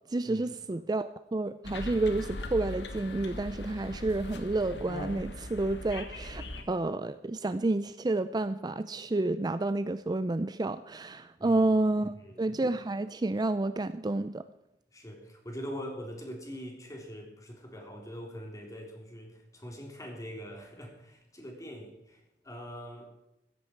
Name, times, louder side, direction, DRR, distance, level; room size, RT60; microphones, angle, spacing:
voice 1, 0.1-14.4, right 2 dB, 25° right, 12 dB, 0.4 m, -30 dB
sound 1, 1.6-6.6, left 1 dB, 75° left, 1.9 m, -40 dB
voice 2, 12.0-12.4 14.9-23.1, equal, 20° left, 1 dB, 3.6 m, -43 dB
15.5 x 14.5 x 4.5 m, 0.90 s
head